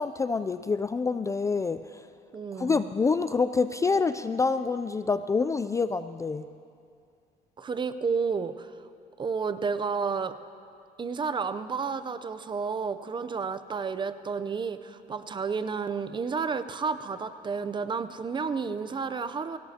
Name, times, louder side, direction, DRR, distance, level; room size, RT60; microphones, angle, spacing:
voice 1, 0.0-2.0 2.6-6.5, left 4 dB, 20° left, 11 dB, 0.3 m, -27 dB
voice 2, 2.3-2.9 7.6-8.7 9.2-10.4 11.0-19.6, right 5 dB, 30° right, 11 dB, 0.6 m, -31 dB
24.5 x 17.5 x 2.8 m, 2.4 s
cardioid pair, 110°, 17 cm